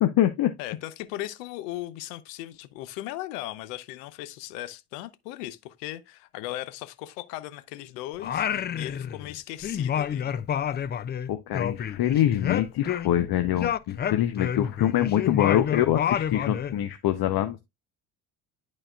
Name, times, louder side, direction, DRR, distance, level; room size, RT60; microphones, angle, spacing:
voice 1, 0.0-0.5 11.3-17.6, left 12 dB, 50° left, 0.8 m, -24 dB
voice 2, 0.6-10.4 14.6-14.7, left 15 dB, 80° left, 0.8 m, -38 dB
Singing, 8.2-9.4 9.6-13.3 13.6-16.8, left 9 dB, 25° left, 0.3 m, -29 dB
11.0 x 4.3 x 2.3 m
hypercardioid pair, 70°, 47 cm